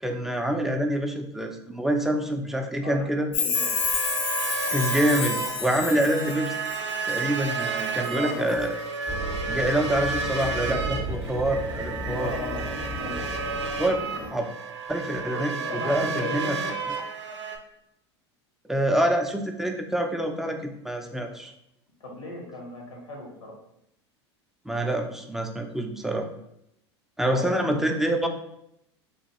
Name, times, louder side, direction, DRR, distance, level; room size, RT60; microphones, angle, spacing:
voice 1, 0.0-3.3 4.7-6.6 7.1-8.7 9.5-12.3 13.8-14.0 14.3-14.5 14.9-16.6 18.7-21.5 24.7-26.3 27.2-28.3, right 1 dB, 5° right, 4 dB, 0.3 m, -26 dB
Chime, 3.3-7.2 7.6-8.2 8.5-8.6, left 6 dB, 55° left, 0.5 m, -29 dB
voice 2, 3.4-3.7 8.0-8.6 12.2-12.6 13.0-13.5 15.3-16.7 22.0-23.6 27.3-27.8, left 2 dB, 90° left, -1 dB, 1.0 m, -37 dB
sound 1, 3.5-17.6, right 4 dB, 80° right, 0.4 m, -32 dB
sound 2, 9.1-14.3, right 2 dB, 30° right, 0.7 m, -34 dB
3.0 x 2.3 x 2.8 m, 0.79 s
hypercardioid pair, 85°, 15 cm